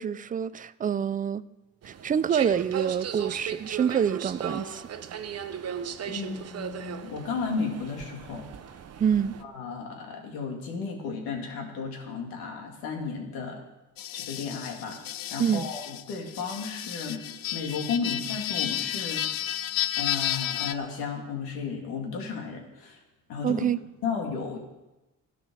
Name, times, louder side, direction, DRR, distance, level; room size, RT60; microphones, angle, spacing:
voice 1, 0.0-1.4 1.9-4.8 9.0-9.3 15.4-15.7 23.4-23.8, right 8 dB, 25° right, 0.4 m, -26 dB
sound 1, 1.8-9.4, right 8 dB, 45° right, 0.8 m, -37 dB
voice 2, 6.1-8.5 9.4-13.6 14.1-15.0 15.3-17.2 17.5-19.6 20.0-23.0 23.3-23.6 24.0-24.6, left 5 dB, 90° left, 2.6 m, -34 dB
sound 2, 14.0-20.7, left 12 dB, 70° left, 0.7 m, -32 dB
12.5 x 9.2 x 6.4 m
cardioid pair, 105°, 35 cm